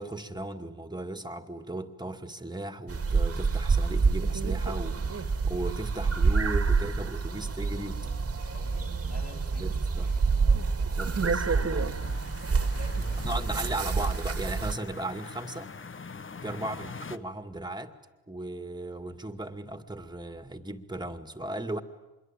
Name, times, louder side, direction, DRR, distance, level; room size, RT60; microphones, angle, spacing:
voice 1, 0.0-8.0 9.6-10.1 11.0-11.9 13.0-15.7 16.4-17.9 18.3-21.8, right 1 dB, 10° right, 9 dB, 2.3 m, -36 dB
sound 1, 2.9-14.7, right 4 dB, 35° right, 2.0 m, -27 dB
voice 2, 8.0-10.8 12.7-13.9 16.6-16.9, left 2 dB, 80° left, 2 dB, 6.2 m, -49 dB
sound 2, 12.0-17.2, left 5 dB, 30° left, 1.2 m, -44 dB
26.0 x 22.5 x 9.1 m, 1.1 s
supercardioid pair, 50°, 39 cm